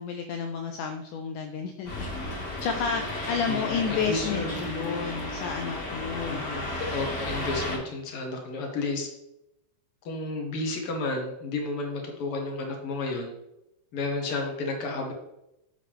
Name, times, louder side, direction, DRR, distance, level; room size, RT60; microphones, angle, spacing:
voice 1, 0.0-2.1 2.6-6.5, left 6 dB, 85° left, 5 dB, 1.8 m, -31 dB
sound 1, 1.8-7.8, left 1 dB, 30° left, 2.3 m, -33 dB
voice 2, 3.5-4.6 6.3-9.1 10.0-13.3 13.9-15.1, left 3 dB, 60° left, 1 dB, 1.5 m, -32 dB
7.5 x 7.0 x 3.5 m, 0.86 s
omnidirectional pair, 4.2 m